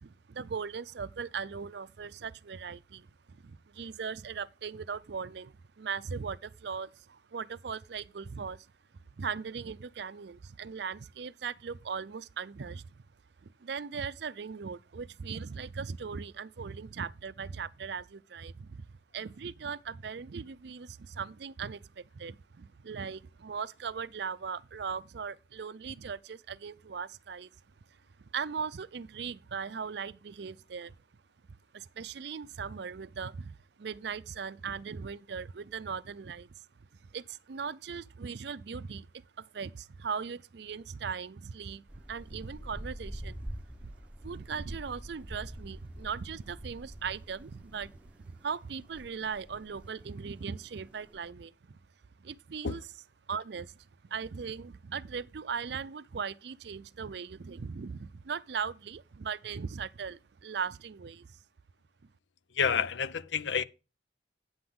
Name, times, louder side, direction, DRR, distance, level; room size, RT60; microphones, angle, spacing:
voice 1, 0.0-8.7 9.2-12.8 13.4-18.8 19.1-27.5 28.3-31.0 31.7-36.5 37.1-39.1 39.4-43.5 43.8-43.9 44.2-47.9 48.2-51.8 52.2-52.8 53.3-53.7 54.1-61.3, right 6 dB, 65° right, 0.5 m, -39 dB
sound 1, 41.9-51.2, right 1 dB, 5° right, 0.8 m, -46 dB
voice 2, 62.5-63.6, left 6 dB, 75° left, 0.6 m, -29 dB
9.4 x 7.8 x 3.7 m
head